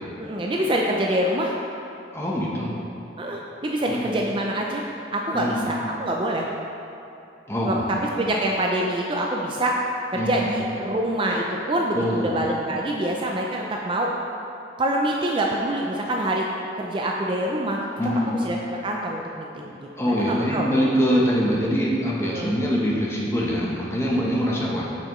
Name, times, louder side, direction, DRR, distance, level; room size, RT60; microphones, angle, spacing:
voice 1, 0.2-1.5 3.2-4.8 5.1-6.5 7.6-7.8 8.2-9.7 10.1-14.1 14.8-16.4 16.8-17.8 18.3-18.6 18.8-19.9 20.3-20.7 22.3-22.6, right 1 dB, 25° right, -1 dB, 0.4 m, -25 dB
voice 2, 2.1-2.7 3.9-4.1 5.3-5.6 7.5-7.8 10.1-10.5 11.9-12.4 18.0-18.3 20.0-24.9, equal, 15° left, -4 dB, 0.9 m, -24 dB
8.8 x 5.7 x 3.1 m, 2.8 s
head